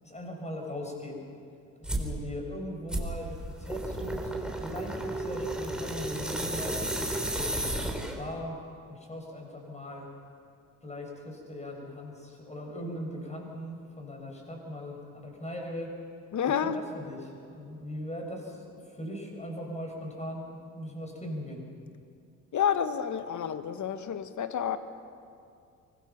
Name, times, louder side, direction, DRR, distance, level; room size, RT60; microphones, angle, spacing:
voice 1, 0.0-1.2 1.8-6.9 7.3-8.6 8.9-10.1 10.8-15.9 16.6-21.7, left 1 dB, 15° left, 1 dB, 6.5 m, -40 dB
sound 1, 1.8-2.1 2.9-8.3, right 1 dB, ahead, 3.7 m, -33 dB
voice 2, 16.3-16.8 22.5-24.8, left 8 dB, 40° left, 11 dB, 1.5 m, -29 dB
24.0 x 20.5 x 5.9 m, 2.4 s
hypercardioid pair, 55°, 44 cm